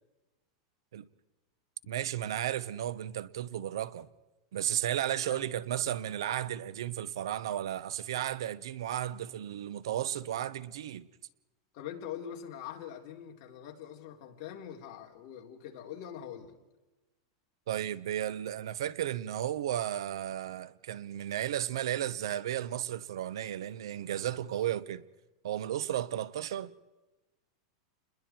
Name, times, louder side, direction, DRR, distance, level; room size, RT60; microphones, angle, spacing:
voice 1, 1.9-4.1 4.5-11.1 17.7-25.0 25.4-26.7, right 11 dB, 85° right, 1.1 m, -34 dB
voice 2, 11.7-16.6, left 9 dB, 45° left, 3.8 m, -43 dB
30.0 x 21.5 x 4.6 m
supercardioid pair, 155°, 2 cm